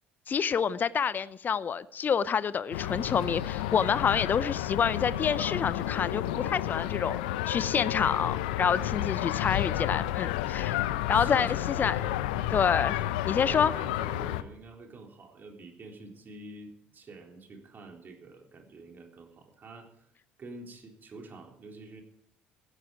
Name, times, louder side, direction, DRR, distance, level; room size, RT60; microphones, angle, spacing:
voice 1, 0.3-7.2 7.5-10.8 11.1-12.0 12.5-13.0 13.2-13.7, left 7 dB, 35° left, 18 dB, 0.6 m, -28 dB
sound 1, 2.7-14.4, left 14 dB, 75° left, 0.8 m, -31 dB
voice 2, 8.8-9.3 11.1-12.6 13.3-20.1 20.4-22.0, right 3 dB, 40° right, 2 dB, 3.9 m, -47 dB
15.5 x 12.5 x 4.9 m, 0.77 s
hypercardioid pair, 55°, 5 cm